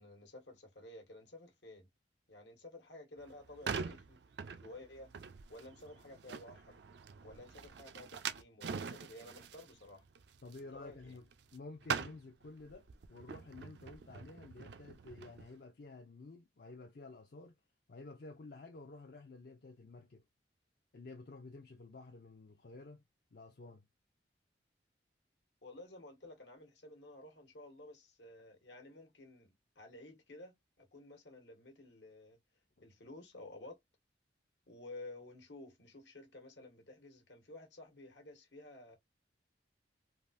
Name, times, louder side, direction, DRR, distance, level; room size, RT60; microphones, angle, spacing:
voice 1, 0.0-1.9 2.3-4.2 4.6-5.1 5.5-6.8 7.2-10.0 10.7-11.2 25.6-32.4 32.8-33.8 34.7-39.0, left 2 dB, 75° left, 1.2 m, -53 dB
sound 1, 3.2-11.6 11.8-15.5, right 6 dB, 70° right, 0.4 m, -44 dB
voice 2, 10.4-17.5 17.9-20.2 20.9-23.0 23.3-23.9 32.8-32.9, left 3 dB, 55° left, 0.5 m, -52 dB
3.5 x 2.5 x 2.5 m
head